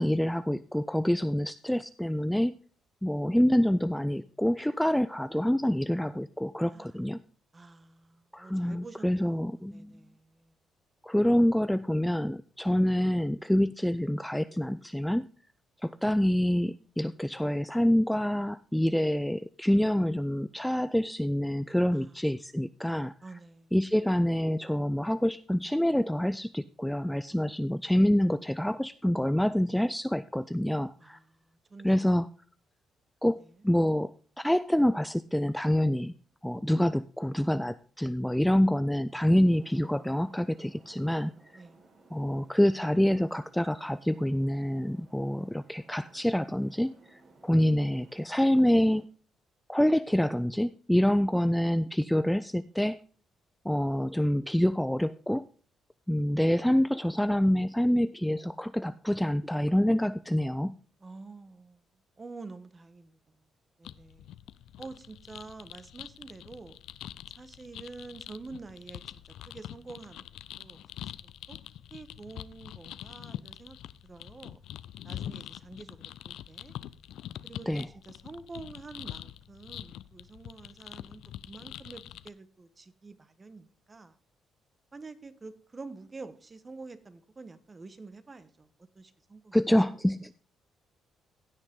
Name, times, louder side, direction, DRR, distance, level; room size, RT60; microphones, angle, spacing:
voice 1, 0.0-2.6 3.0-7.2 8.3-9.9 11.0-15.3 15.8-23.1 23.7-31.2 31.8-32.3 33.2-36.1 36.4-41.6 42.1-49.1 49.7-53.0 53.6-55.4 56.1-60.7 77.7-77.9 89.5-90.3, equal, 5° left, 0.4 m, -26 dB
voice 2, 6.7-7.0 7.5-10.5 21.9-22.2 23.2-23.7 31.0-32.0 33.4-33.7 41.5-41.8 61.0-61.8 62.2-63.4 63.8-64.3 64.8-66.8 67.3-70.3 70.6-71.6 71.9-73.8 74.0-74.6 75.0-76.7 77.4-84.2 84.9-89.6, right 3 dB, 30° right, 1.2 m, -48 dB
sound 1, 39.2-49.0, right 3 dB, 50° right, 4.4 m, -59 dB
sound 2, 63.8-82.3, left 12 dB, 80° left, 0.4 m, -44 dB
16.0 x 6.4 x 3.7 m
cardioid pair, 90°, 0 cm